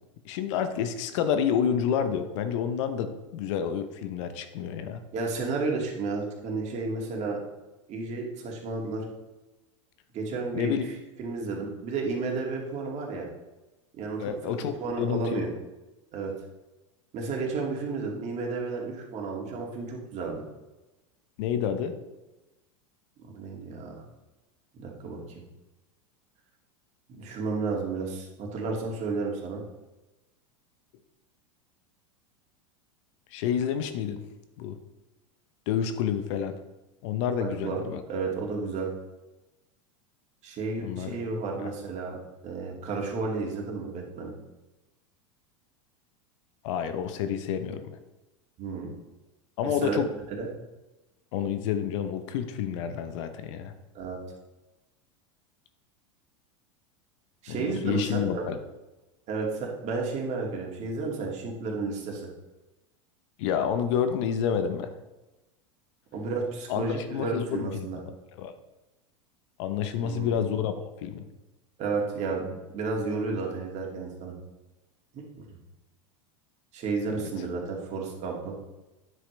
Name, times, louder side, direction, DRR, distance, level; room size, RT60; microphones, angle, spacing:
voice 1, 0.2-5.0 10.5-10.8 14.2-15.4 21.4-21.9 33.3-34.2 34.6-34.8 35.7-36.6 37.0-38.0 40.8-41.1 41.6-41.7 46.6-48.0 49.6-50.1 51.3-53.7 57.5-58.6 63.4-64.9 66.7-66.8 67.1-68.5 69.6-71.3 77.1-77.3, left 8 dB, 65° left, 10 dB, 0.9 m, -29 dB
voice 2, 5.1-7.4 7.9-9.0 10.1-10.8 11.2-13.3 14.0-14.5 14.8-15.5 16.1-16.3 17.1-20.4 23.3-24.0 24.8-25.2 27.2-29.6 37.4-37.8 38.1-38.9 40.4-44.3 48.6-48.9 49.6-50.0 50.4-50.5 53.9-54.2 57.4-58.4 59.3-62.3 66.1-68.0 70.0-70.3 71.8-74.3 75.1-75.5 76.7-78.6, right 4 dB, 45° right, 0 dB, 2.5 m, -32 dB
9.5 x 7.8 x 3.4 m, 1.1 s
hypercardioid pair, 100°, 17 cm